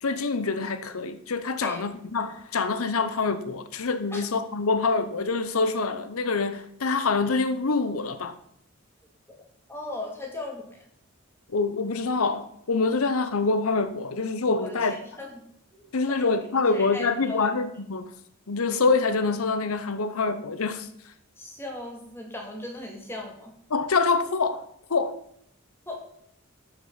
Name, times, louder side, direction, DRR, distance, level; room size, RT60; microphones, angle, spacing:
voice 1, 0.0-8.3 11.5-14.9 15.9-18.1 18.5-20.9 23.7-24.6 24.9-25.1, left 4 dB, 90° left, 0.8 m, -25 dB
voice 2, 9.7-10.8 14.6-15.4 15.7-16.3 16.7-17.5 21.4-23.5 25.9-26.0, left 2 dB, 10° left, 2.3 m, -37 dB
13.0 x 6.1 x 5.7 m
head